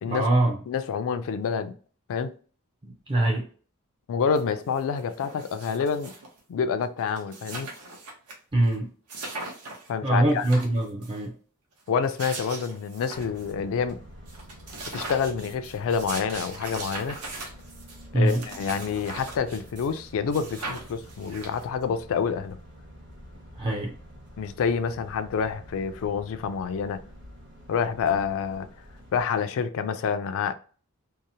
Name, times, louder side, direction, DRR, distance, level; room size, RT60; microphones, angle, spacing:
voice 1, 0.1-0.6 2.8-3.5 8.5-8.9 10.0-11.3 18.1-18.4 23.6-23.9, right 1 dB, 20° right, 0.4 m, -23 dB
voice 2, 0.7-1.7 2.1-2.3 4.1-6.1 6.5-7.7 9.9-10.5 11.9-14.0 14.9-17.2 18.1-22.6 24.4-27.0 27.7-28.7 29.1-30.5, left 6 dB, 65° left, 0.3 m, -28 dB
sound 1, 4.4-4.5 4.7-6.4 6.8-6.9 7.1-8.3 8.7-8.8 9.1-9.9 10.3-11.2 11.9-13.5 13.9-14.0 14.3-20.0 20.3-21.8, right 2 dB, 80° right, 0.8 m, -40 dB
sound 2, 13.1-29.2, equal, 55° right, 0.8 m, -48 dB
2.8 x 2.0 x 2.6 m
head